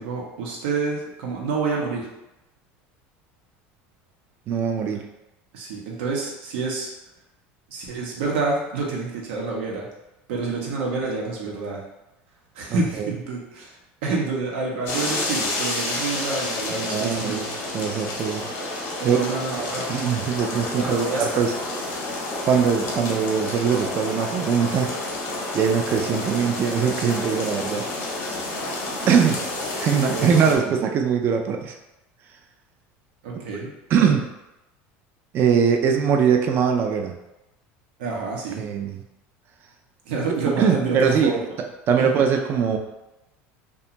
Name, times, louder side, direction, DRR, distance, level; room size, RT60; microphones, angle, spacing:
voice 1, 0.0-2.1 5.5-6.9 7.7-9.9 10.3-11.8 12.5-17.5 19.0-19.9 20.8-21.3 29.7-30.7 33.2-33.7 34.0-34.1 38.0-38.6 40.1-41.4 42.0-42.1, right 4 dB, 90° right, -2 dB, 0.7 m, -28 dB
voice 2, 4.5-5.0 12.7-13.1 16.7-18.5 19.0-19.2 19.6-21.5 22.4-24.9 25.5-27.9 29.1-29.4 29.8-31.7 33.9-34.2 35.3-37.1 38.6-39.0 40.6-41.3 41.9-42.8, right 7 dB, 40° right, 4 dB, 0.3 m, -22 dB
sound 1, 14.9-30.6, left 2 dB, 65° left, 0.8 m, -30 dB
2.5 x 2.2 x 2.9 m, 0.95 s
supercardioid pair, 135°, 6 cm